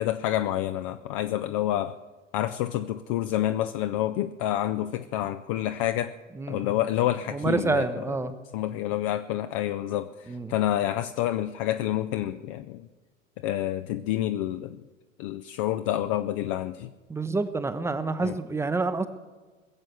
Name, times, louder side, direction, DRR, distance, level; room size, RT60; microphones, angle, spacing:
voice 1, 0.0-2.0 2.3-6.1 6.5-8.0 8.5-12.9 13.4-14.8 15.2-16.9 18.2-18.3, left 13 dB, 25° left, 10 dB, 0.4 m, -28 dB
voice 2, 7.3-8.3 10.3-10.5 17.1-19.1, right 3 dB, 5° right, 12 dB, 0.7 m, -27 dB
21.0 x 7.6 x 8.0 m, 1.3 s
figure-of-eight pair, 90°, 39 cm